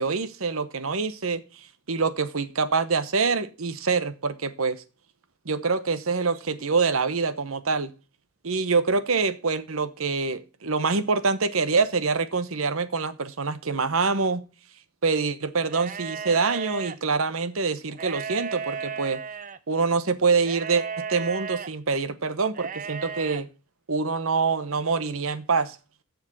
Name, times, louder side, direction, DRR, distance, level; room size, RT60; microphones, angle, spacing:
voice 1, 0.0-1.4 1.9-4.8 5.4-7.9 8.4-14.4 15.0-19.2 19.7-23.5 23.9-25.8, right 4 dB, 70° right, 1.0 m, -25 dB
sound 1, 15.7-17.0 17.9-19.6 20.4-21.7 22.5-23.4, right 6 dB, 35° right, 0.6 m, -34 dB
7.5 x 6.6 x 7.8 m
head